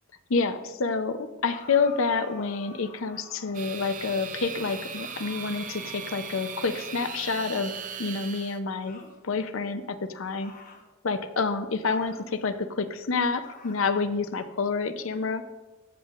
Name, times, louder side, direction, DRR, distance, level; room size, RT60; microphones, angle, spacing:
voice 1, 0.3-7.7 8.0-9.0 9.2-10.5 11.0-15.5, left 4 dB, 75° left, 10 dB, 0.6 m, -28 dB
sound 1, 1.5-3.8 4.9-7.2 8.8-9.2 10.4-10.9 11.8-12.4 13.4-13.9, left 4 dB, 40° left, 1.1 m, -49 dB
sound 2, 3.5-8.6, right 7 dB, 40° right, 0.6 m, -38 dB
14.0 x 8.3 x 2.5 m, 1.1 s
head